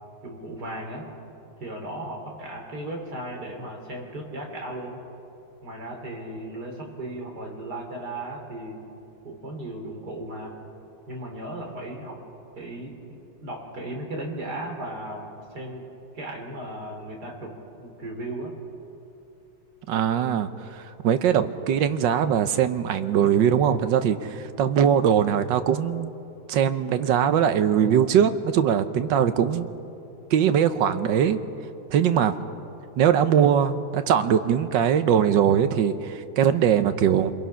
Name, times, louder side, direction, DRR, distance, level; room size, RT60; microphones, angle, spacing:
voice 1, 0.2-1.1 1.6-5.0 5.6-8.8 9.2-10.6 11.1-12.2 12.6-15.8 16.1-18.5, right 1 dB, 55° right, 1 dB, 3.7 m, -36 dB
voice 2, 19.9-26.1 26.5-29.7 30.3-31.4 31.9-32.3 33.0-37.3, right 8 dB, 75° right, 11 dB, 1.5 m, -21 dB
26.5 x 22.0 x 5.7 m, 2.9 s
omnidirectional pair, 2.1 m